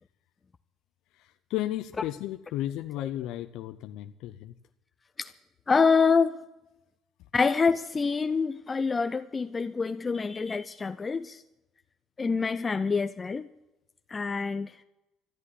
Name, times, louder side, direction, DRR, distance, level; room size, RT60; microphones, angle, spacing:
voice 1, 1.1-4.5, left 14 dB, 75° left, 9 dB, 0.6 m, -34 dB
voice 2, 5.7-6.3 7.3-11.4 12.2-13.5 14.1-14.8, left 5 dB, 25° left, 11 dB, 0.5 m, -26 dB
13.5 x 9.8 x 9.8 m, 0.96 s
cardioid pair, 110°, 0 cm